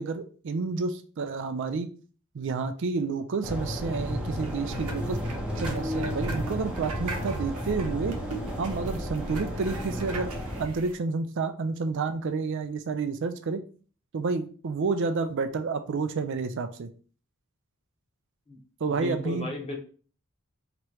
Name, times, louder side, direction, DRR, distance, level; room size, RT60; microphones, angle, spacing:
voice 1, 0.0-1.9 2.3-5.2 5.6-8.1 8.6-10.3 10.6-13.6 14.1-16.9 18.8-19.5, right 4 dB, 55° right, 8 dB, 0.4 m, -30 dB
sound 1, 3.4-10.7, equal, 5° right, 0.7 m, -33 dB
sound 2, 4.4-10.9, right 2 dB, 90° right, 0.8 m, -40 dB
voice 2, 18.9-19.8, left 2 dB, 25° left, 0 dB, 1.1 m, -35 dB
3.0 x 3.0 x 4.6 m, 0.41 s
head